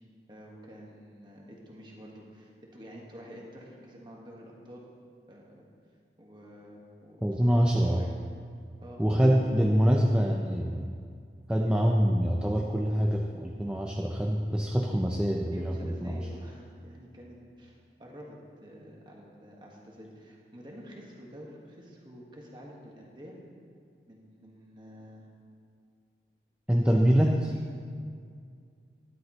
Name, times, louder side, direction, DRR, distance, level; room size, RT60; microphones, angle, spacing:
voice 1, 0.3-4.8 5.3-5.6 6.2-8.1 8.8-9.4 15.5-23.4 24.1-25.2 26.7-27.0 27.3-27.6, equal, 25° right, -2 dB, 1.6 m, -48 dB
voice 2, 7.2-8.1 9.0-10.9 11.5-15.7 16.0-16.2 26.7-27.5, equal, 5° right, 0 dB, 0.5 m, -25 dB
13.5 x 11.0 x 3.1 m, 2.2 s
head